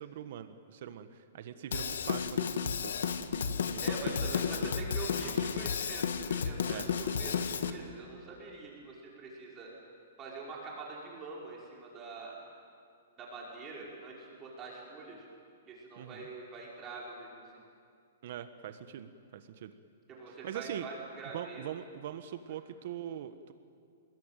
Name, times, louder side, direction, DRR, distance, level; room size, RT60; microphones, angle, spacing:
voice 1, 0.0-2.9 3.7-4.9 5.2-5.7 6.7-6.9 16.0-16.3 18.2-19.7 20.4-20.9 21.3-23.5, right 10 dB, 55° right, 9 dB, 1.4 m, -43 dB
Drum kit / Drum, 1.7-7.7, left 7 dB, 80° left, 1.7 m, -32 dB
voice 2, 3.8-9.7 10.2-12.3 13.2-15.3 15.7-17.4 20.1-21.7, right 3 dB, 20° right, -4 dB, 5.3 m, -44 dB
29.5 x 20.5 x 9.2 m, 2.3 s
hypercardioid pair, 160°, 0 cm